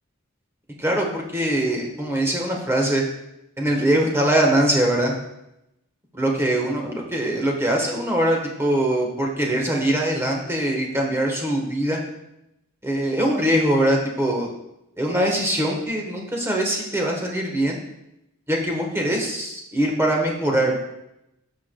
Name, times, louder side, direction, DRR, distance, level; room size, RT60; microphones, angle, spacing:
voice 1, 0.8-3.0 3.6-5.1 6.1-12.0 12.8-14.5 15.0-17.8 18.5-20.8, right 1 dB, 10° right, 0 dB, 1.2 m, -22 dB
14.0 x 4.7 x 2.3 m, 0.86 s
head